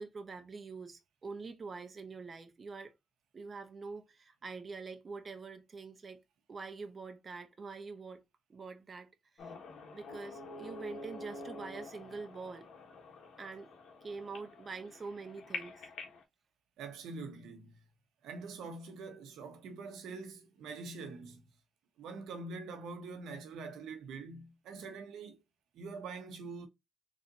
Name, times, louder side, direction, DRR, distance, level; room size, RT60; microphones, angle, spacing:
voice 1, 0.0-2.9 3.3-6.2 6.5-8.2 8.5-9.6 9.9-12.7 13.4-13.7 14.0-15.9, right 4 dB, 40° right, 0.8 m, -45 dB
sound 1, 9.4-16.2, left 3 dB, 80° left, 1.4 m, -47 dB
voice 2, 16.8-17.7 18.2-21.4 22.0-25.4 25.7-26.7, right 4 dB, 90° right, 1.0 m, -44 dB
4.1 x 3.3 x 2.5 m
cardioid pair, 95°, 0 cm